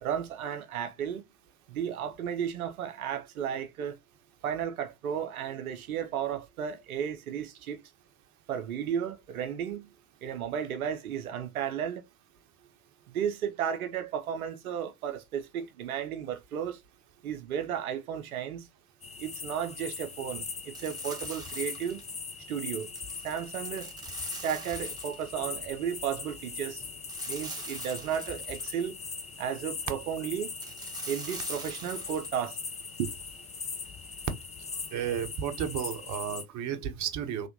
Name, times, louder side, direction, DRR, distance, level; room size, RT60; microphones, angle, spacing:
voice 1, 0.0-1.2 1.7-4.0 4.4-7.8 8.5-9.9 10.2-12.0 13.1-16.8 17.2-18.7 19.2-22.0 22.5-22.9 23.2-23.9 24.4-26.8 27.3-29.0 29.4-30.5 31.1-32.6 33.0-33.1, right 8 dB, 75° right, 0.7 m, -34 dB
sound 1, 19.0-36.4, left 5 dB, 15° left, 0.5 m, -40 dB
sound 2, 20.7-22.1 22.8-25.3 27.1-28.8 30.6-32.3, right 2 dB, 10° right, 1.3 m, -43 dB
voice 2, 34.9-37.5, right 9 dB, 40° right, 0.8 m, -33 dB
3.3 x 2.8 x 2.6 m
figure-of-eight pair, 55°, 43 cm